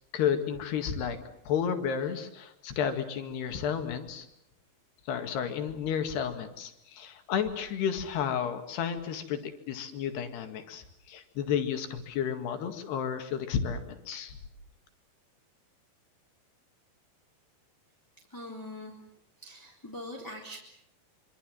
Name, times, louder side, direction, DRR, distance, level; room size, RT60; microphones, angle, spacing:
voice 1, 0.1-1.2 1.5-4.3 5.1-14.4, left 8 dB, 75° left, 7 dB, 4.0 m, -32 dB
voice 2, 18.3-19.0 19.4-20.6, left 1 dB, 5° left, -1 dB, 2.8 m, -42 dB
26.0 x 25.0 x 7.7 m, 0.77 s
omnidirectional pair, 4.9 m